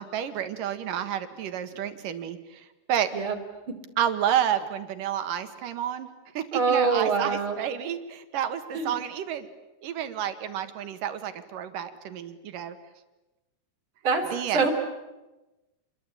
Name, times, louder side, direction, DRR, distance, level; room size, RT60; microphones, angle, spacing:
voice 1, 0.0-3.1 4.0-6.1 6.3-9.5 9.8-12.8 14.3-14.7, right 10 dB, 85° right, 10 dB, 3.2 m, -30 dB
voice 2, 6.5-7.6 8.7-8.9 14.0-14.2 14.5-14.7, right 5 dB, 40° right, 2 dB, 4.2 m, -24 dB
28.5 x 22.0 x 8.6 m, 1.0 s
omnidirectional pair, 3.7 m